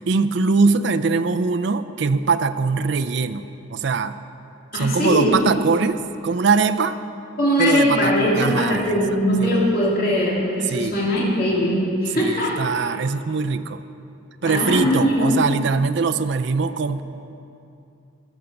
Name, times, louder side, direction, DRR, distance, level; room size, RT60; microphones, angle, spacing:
voice 1, 0.0-4.2 4.7-7.0 7.6-9.0 9.4-9.5 10.7-11.0 12.1-13.8 14.4-17.0, right 4 dB, 55° right, 10 dB, 0.4 m, -22 dB
voice 2, 4.7-5.4 7.4-12.6 14.4-15.4, equal, 45° left, -5 dB, 2.3 m, -20 dB
14.0 x 6.5 x 7.0 m, 2.7 s
head